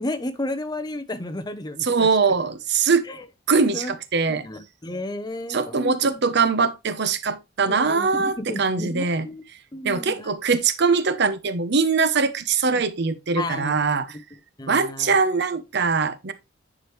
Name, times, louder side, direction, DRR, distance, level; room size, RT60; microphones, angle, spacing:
voice 1, 0.0-2.1 3.1-3.3 3.7-3.9 4.3-6.2 7.7-9.4 9.7-10.3 12.7-12.8 13.4-13.7 14.6-15.2, left 2 dB, 20° left, 0.8 m, -32 dB
voice 2, 1.8-3.1 3.5-4.5 5.5-9.3 9.8-14.2 14.7-16.3, right 4 dB, 60° right, 0.7 m, -22 dB
9.9 x 4.9 x 3.1 m
head